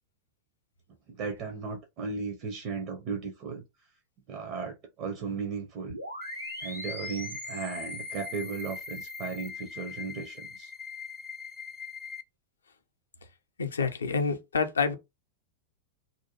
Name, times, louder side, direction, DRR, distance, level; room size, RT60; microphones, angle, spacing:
voice 1, 1.1-3.9 4.3-6.0 6.6-10.7, right 5 dB, 40° right, 0.5 m, -36 dB
sound 1, 5.9-9.5, right 1 dB, 90° right, 0.5 m, -42 dB
sound 2, 6.2-12.2, left 6 dB, 15° left, 0.4 m, -41 dB
voice 2, 13.6-14.9, left 5 dB, 70° left, 0.5 m, -28 dB
2.5 x 2.2 x 2.8 m
figure-of-eight pair, 90°, 0 cm